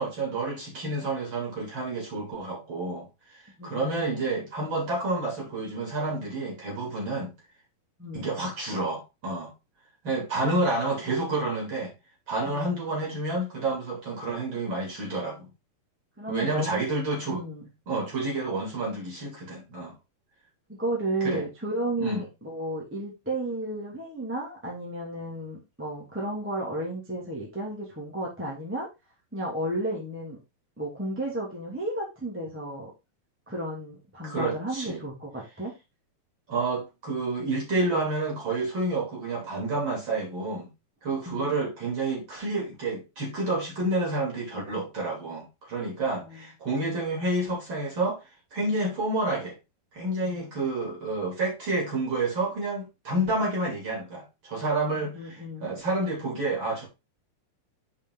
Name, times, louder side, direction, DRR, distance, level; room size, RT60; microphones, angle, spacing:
voice 1, 0.0-3.1 3.6-7.3 8.1-9.5 10.0-11.9 12.3-15.5 16.3-17.4 17.9-19.9 21.2-21.4 22.0-22.2 34.2-35.0 36.5-40.7 41.0-48.2 48.5-49.6 49.9-56.9, right 2 dB, 35° right, 3.5 m, -29 dB
voice 2, 3.6-4.0 8.0-8.3 12.4-12.8 16.2-16.8 17.3-17.6 20.7-28.9 29.3-30.4 30.8-32.9 33.5-35.7 41.2-41.5 46.2-46.4 54.9-55.7, right 1 dB, 5° right, 1.8 m, -33 dB
7.3 x 5.0 x 3.9 m
omnidirectional pair, 4.1 m